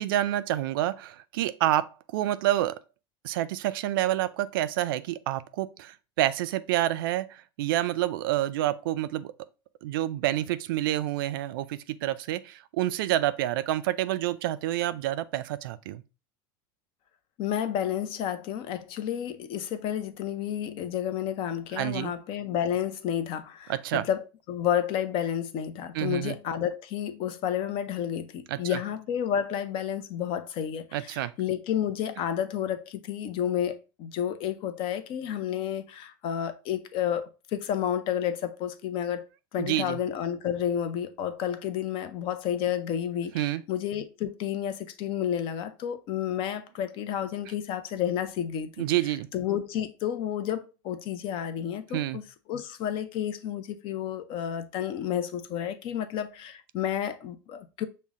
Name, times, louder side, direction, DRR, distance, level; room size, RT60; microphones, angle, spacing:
voice 1, 0.0-2.8 3.2-9.3 9.8-16.0 21.8-22.1 23.7-24.0 25.9-26.4 28.5-28.8 30.9-31.3 39.6-40.0 43.3-43.6 48.8-49.3 51.9-52.2, right 14 dB, 80° right, 0.4 m, -28 dB
voice 2, 17.4-48.8 49.3-52.2 52.5-57.8, left 9 dB, 50° left, 0.6 m, -31 dB
5.5 x 2.1 x 3.5 m
supercardioid pair, 115°, 11 cm